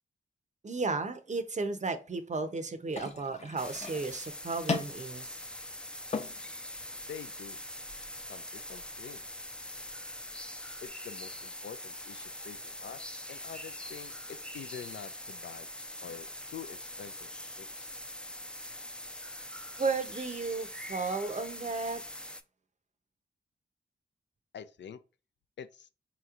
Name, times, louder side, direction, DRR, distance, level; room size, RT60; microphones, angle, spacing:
voice 1, 0.6-5.3 19.8-22.0, right 3 dB, 40° right, 0.6 m, -34 dB
sound 1, 2.9-10.9, left 4 dB, 35° left, 0.7 m, -42 dB
sound 2, 3.6-22.4, left 1 dB, 5° left, 0.4 m, -43 dB
voice 2, 7.1-7.6 8.3-9.2 10.8-15.7 16.0-17.3 17.6-17.9 24.5-25.0 25.6-25.9, left 8 dB, 70° left, 0.4 m, -46 dB
4.2 x 2.9 x 2.4 m
cardioid pair, 55°, 20 cm